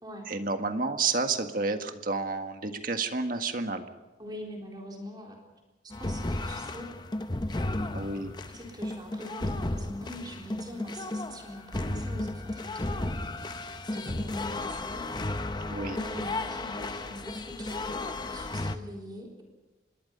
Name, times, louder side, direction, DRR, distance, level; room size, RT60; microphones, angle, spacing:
voice 1, 0.3-3.8 7.9-8.3 15.7-16.0, right 3 dB, 45° right, 6 dB, 1.7 m, -30 dB
voice 2, 4.2-5.4 5.8-6.9 7.6-8.0 8.5-13.0 13.9-15.1 15.9-19.4, equal, 25° right, 0 dB, 3.9 m, -43 dB
sound 1, 5.9-18.8, left 2 dB, 25° left, 0.8 m, -34 dB
26.0 x 21.5 x 5.5 m, 1.1 s
head